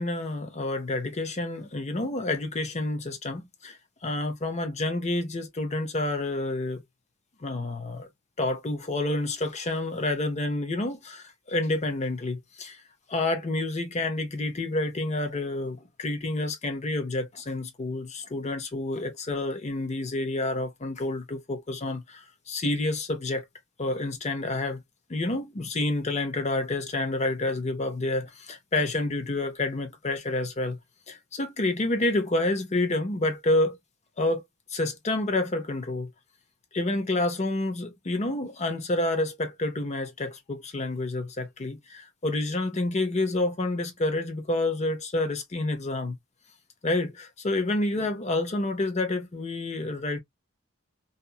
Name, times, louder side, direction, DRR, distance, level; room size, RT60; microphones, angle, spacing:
voice 1, 0.0-3.8 4.0-6.8 7.4-8.1 8.4-12.8 13.1-23.4 23.8-24.8 25.1-30.8 31.1-33.8 34.2-34.4 34.7-36.1 36.7-46.2 46.8-50.2, left 2 dB, 35° left, 0.7 m, -29 dB
2.8 x 2.5 x 2.3 m
head